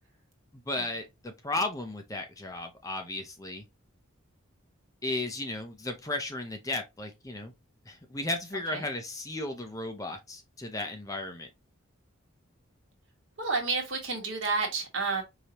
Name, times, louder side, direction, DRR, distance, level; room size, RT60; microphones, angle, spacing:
voice 1, 0.7-3.6 5.0-7.5 7.9-11.5, left 2 dB, 15° left, 0.5 m, -35 dB
voice 2, 13.4-15.2, right 4 dB, 60° right, 1.4 m, -30 dB
4.8 x 2.8 x 2.9 m
head